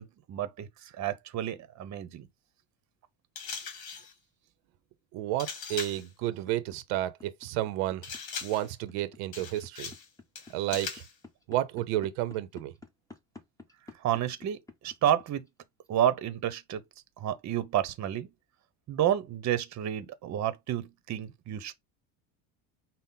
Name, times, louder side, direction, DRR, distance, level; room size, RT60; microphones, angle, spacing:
voice 1, 0.0-2.3 14.0-15.5 15.9-16.8 17.2-18.3 18.9-21.7, right 11 dB, 40° right, 0.7 m, -30 dB
sound 1, 3.3-4.1 5.4-6.1 8.0-8.7 9.3-10.1 10.3-11.1, left 6 dB, 55° left, 1.4 m, -39 dB
voice 2, 5.1-8.0 8.4-9.9 10.5-11.0 11.5-12.7, right 14 dB, 80° right, 0.7 m, -31 dB
sound 2, 5.7-15.9, left 3 dB, 10° left, 0.8 m, -50 dB
5.6 x 2.1 x 3.6 m
supercardioid pair, 105°, 44 cm